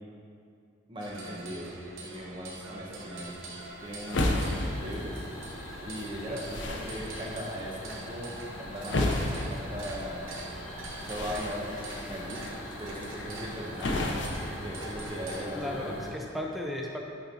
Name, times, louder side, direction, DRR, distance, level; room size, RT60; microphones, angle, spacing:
voice 1, 0.9-1.7 2.0-3.4 3.8-5.2 5.8-9.2 9.5-10.3 11.0-12.4 12.8-15.9, equal, 25° right, -3 dB, 1.0 m, -38 dB
sound 1, 1.0-15.5, right 2 dB, 75° right, 0.9 m, -45 dB
sound 2, 3.3-15.3, left 1 dB, 60° left, 0.7 m, -35 dB
sound 3, 4.4-16.1, left 1 dB, 80° left, 1.3 m, -43 dB
voice 2, 15.5-17.0, left 1 dB, ahead, -1 dB, 0.4 m, -35 dB
8.7 x 4.5 x 4.1 m, 2.4 s
head